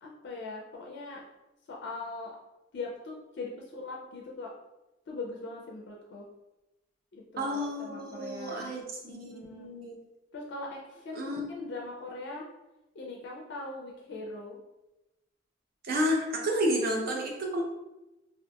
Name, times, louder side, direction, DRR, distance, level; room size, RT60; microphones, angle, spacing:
voice 1, 0.0-1.2 1.7-2.4 2.7-4.5 5.1-6.2 7.1-8.7 9.3-9.7 10.3-12.4 12.9-14.6, left 3 dB, 65° left, -1 dB, 0.4 m, -41 dB
voice 2, 7.4-10.0 11.1-11.4 15.8-17.6, equal, 55° right, 0 dB, 0.5 m, -31 dB
2.7 x 2.4 x 2.2 m, 0.98 s
head